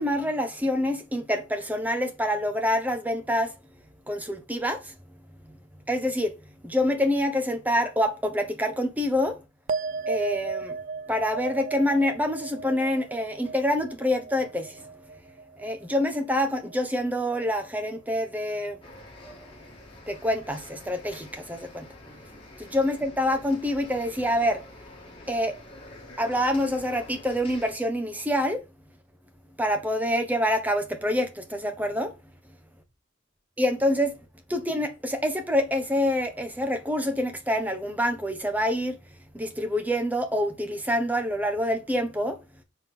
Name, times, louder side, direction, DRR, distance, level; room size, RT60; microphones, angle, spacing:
voice 1, 0.0-3.5 4.1-4.9 5.9-6.3 6.6-9.4 10.1-10.8 11.1-14.9 15.6-18.8 19.2-19.4 20.1-21.9 22.6-24.6 25.3-25.6 26.2-28.6 29.6-32.1 33.6-34.2 34.5-39.0 39.3-42.4, left 1 dB, 10° right, 1.2 m, -26 dB
sound 1, 9.7-16.4 16.7-17.3, right 4 dB, 45° right, 0.3 m, -35 dB
sound 2, 18.8-27.7, left 1 dB, 25° left, 2.3 m, -47 dB
6.0 x 4.7 x 5.6 m
head